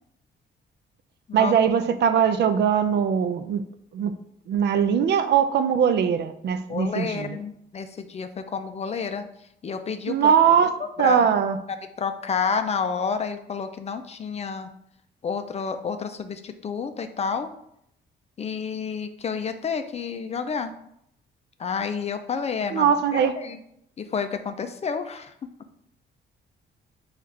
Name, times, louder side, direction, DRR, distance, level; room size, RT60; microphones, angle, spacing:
voice 1, 1.3-3.6 3.9-4.1 4.5-7.4 10.1-10.7 11.0-11.6 22.7-23.3, right 7 dB, 60° right, 10 dB, 0.4 m, -21 dB
voice 2, 6.7-9.2 9.6-10.3 11.0-11.4 11.7-14.7 15.2-17.5 18.4-20.7 21.6-23.6 24.0-25.3, left 6 dB, 35° left, 8 dB, 0.4 m, -30 dB
5.4 x 2.4 x 3.2 m, 0.75 s
cardioid pair, 90°, 20 cm